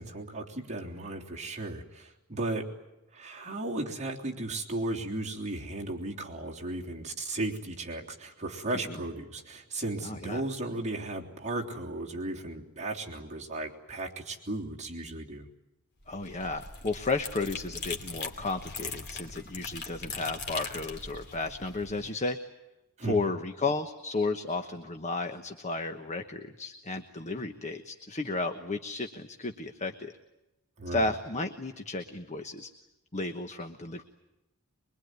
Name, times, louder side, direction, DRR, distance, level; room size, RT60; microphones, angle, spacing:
voice 1, 0.0-2.8 3.1-15.5 23.0-23.3 30.8-31.1, right 2 dB, 35° right, -2 dB, 3.3 m, -35 dB
voice 2, 10.0-10.4 16.1-22.4 23.1-30.1 30.9-32.7 33.1-34.0, left 3 dB, 35° left, 6 dB, 1.2 m, -33 dB
sound 1, 16.0-22.1, left 4 dB, 50° left, 2.7 m, -40 dB
24.0 x 23.0 x 9.5 m, 0.97 s
head